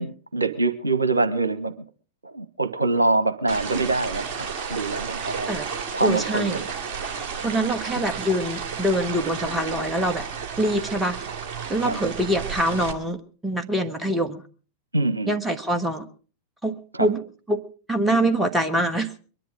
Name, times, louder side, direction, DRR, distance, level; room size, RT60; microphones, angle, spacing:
voice 1, 0.0-1.7 2.2-4.3 4.7-6.6 11.8-12.0 14.9-15.3 16.9-17.1, right 2 dB, 80° right, 1.0 m, -24 dB
sound 1, 3.5-12.9, right 6 dB, 40° right, 2.7 m, -32 dB
voice 2, 6.0-6.6 7.4-10.2 10.6-11.2 11.7-14.4 15.3-16.1 16.6-17.6 17.9-19.1, right 1 dB, 10° right, 1.4 m, -24 dB
22.5 x 11.0 x 5.0 m
figure-of-eight pair, 90°, 0 cm